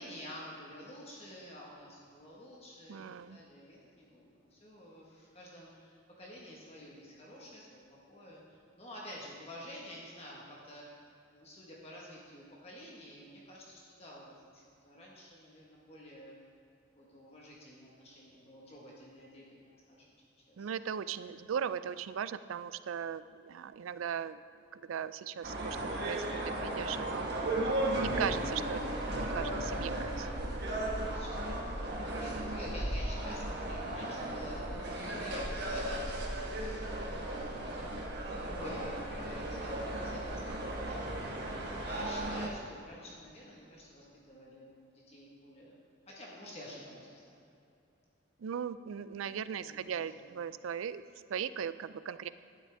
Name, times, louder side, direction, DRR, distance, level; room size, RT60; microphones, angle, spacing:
voice 1, 0.0-11.0 11.3-16.4 17.0-20.0 20.5-20.7 31.0-37.9 38.4-45.8 46.1-47.4 49.6-50.2, equal, 30° left, -4 dB, 1.3 m, -49 dB
voice 2, 2.9-3.4 20.6-24.4 24.7-27.2 28.0-28.8 29.3-30.6 48.4-51.0 51.3-52.3, right 8 dB, 90° right, 14 dB, 0.4 m, -38 dB
sound 1, 25.4-42.5, right 1 dB, 55° right, 1.3 m, -35 dB
11.5 x 10.0 x 3.5 m, 2.5 s
head